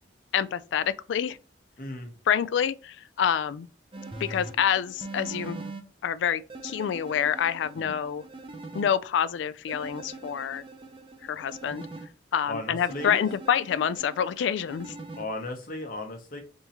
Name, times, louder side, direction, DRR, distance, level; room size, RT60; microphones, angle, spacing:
voice 1, 0.3-1.4 2.3-3.7 4.3-5.6 6.0-8.2 8.7-10.6 11.2-11.9 12.3-14.9, left 8 dB, 75° left, 0.3 m, -27 dB
voice 2, 1.8-2.1 7.8-8.0 12.5-13.2 15.2-16.4, left 2 dB, 45° left, 0.8 m, -36 dB
sound 1, 3.9-5.8 6.5-8.9 9.7-12.1 12.9-15.2, right 2 dB, 25° right, 0.5 m, -42 dB
4.1 x 3.6 x 2.8 m
head